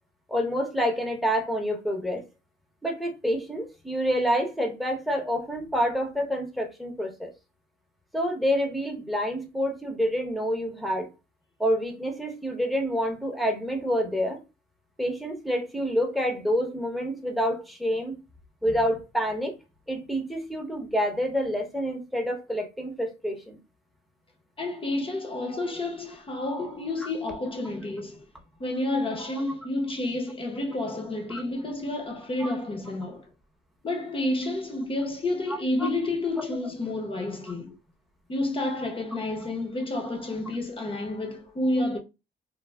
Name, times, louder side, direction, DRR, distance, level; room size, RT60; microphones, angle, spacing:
voice 1, 0.3-2.2 2.8-7.3 8.1-11.1 11.6-14.4 15.0-18.1 18.6-19.5 19.9-23.6 27.0-27.1 32.4-32.5 35.8-35.9 36.4-36.5, equal, ahead, 0.8 m, -27 dB
voice 2, 24.6-28.3 28.6-33.3 33.8-37.8 38.3-42.0, left 2 dB, 25° left, 0.8 m, -30 dB
3.3 x 2.2 x 2.2 m
cardioid pair, 90°, 20 cm